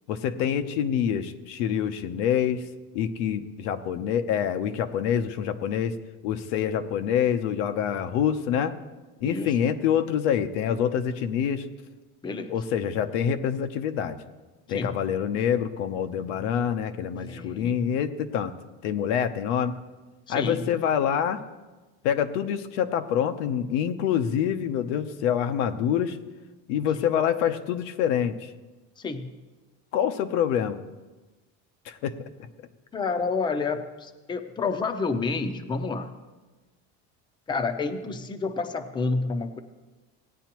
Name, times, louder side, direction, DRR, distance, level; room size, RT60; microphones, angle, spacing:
voice 1, 0.1-2.6 2.9-5.9 6.2-8.7 9.2-11.6 12.5-14.2 14.7-18.5 18.8-19.7 20.3-21.4 22.0-26.2 26.7-28.5 29.9-30.8 31.9-32.3, left 9 dB, 90° left, 8 dB, 0.9 m, -26 dB
voice 2, 9.2-9.6 12.2-12.6 14.7-15.0 17.3-17.9 20.3-20.7 29.0-29.3 32.9-36.2 37.5-39.6, left 4 dB, 15° left, 7 dB, 0.6 m, -29 dB
17.5 x 9.2 x 3.0 m, 1.2 s
cardioid pair, 140°, 35 cm